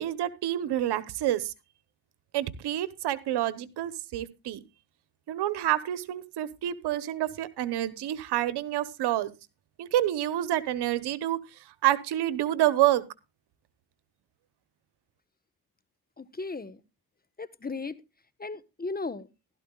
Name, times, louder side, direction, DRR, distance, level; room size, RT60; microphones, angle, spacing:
voice 1, 0.0-1.5 2.3-4.6 5.3-9.3 9.8-11.4 11.8-13.0, right 13 dB, 85° right, 1.1 m, -28 dB
voice 2, 16.2-16.8 17.4-18.0 18.4-19.3, left 3 dB, 25° left, 1.3 m, -36 dB
15.5 x 12.5 x 2.4 m
supercardioid pair, 55°, 39 cm